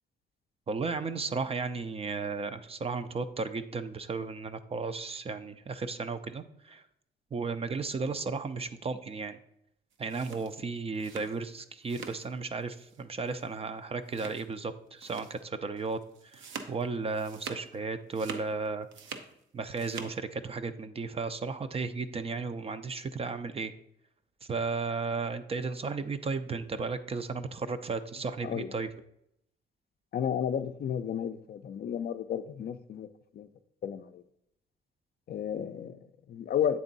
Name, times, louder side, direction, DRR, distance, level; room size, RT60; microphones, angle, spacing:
voice 1, 0.7-6.8 7.3-9.4 10.0-16.0 16.3-18.9 19.5-23.7 24.5-28.9, right 4 dB, 30° right, 10 dB, 0.4 m, -34 dB
sound 1, 9.9-12.3 12.6-13.0 13.3-13.4 14.1-14.6 15.0-15.4 15.8-17.8 18.0-19.3 19.6-20.2, right 6 dB, 75° right, 0.7 m, -44 dB
voice 2, 28.4-28.7 30.1-33.1 33.3-33.5 33.8-34.2 35.3-36.8, left 9 dB, 50° left, 10 dB, 0.4 m, -32 dB
8.4 x 3.5 x 4.0 m, 0.78 s
cardioid pair, 90°, 20 cm